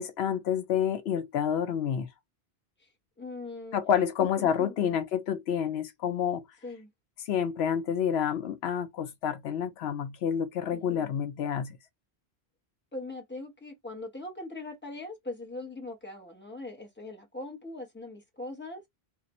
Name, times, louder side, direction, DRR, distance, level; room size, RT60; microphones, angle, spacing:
voice 1, 0.0-2.1 3.7-6.4 7.3-11.8, left 8 dB, 80° left, 0.9 m, -29 dB
voice 2, 3.2-3.8 4.4-4.9 6.6-6.9 10.7-11.1 12.9-18.8, left 2 dB, 10° left, 0.9 m, -41 dB
2.5 x 2.4 x 4.1 m
omnidirectional pair, 1.1 m